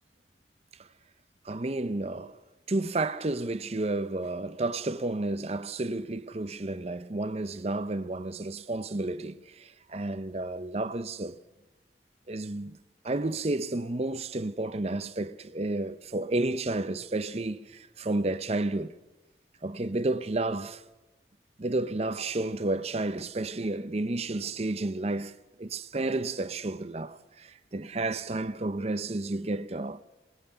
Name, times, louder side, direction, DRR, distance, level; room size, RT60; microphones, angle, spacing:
voice 1, 1.4-2.4 2.7-11.4 12.3-12.8 13.0-19.0 19.6-20.8 21.6-30.0, right 2 dB, 35° right, 0.7 m, -31 dB
21.0 x 19.0 x 6.8 m
head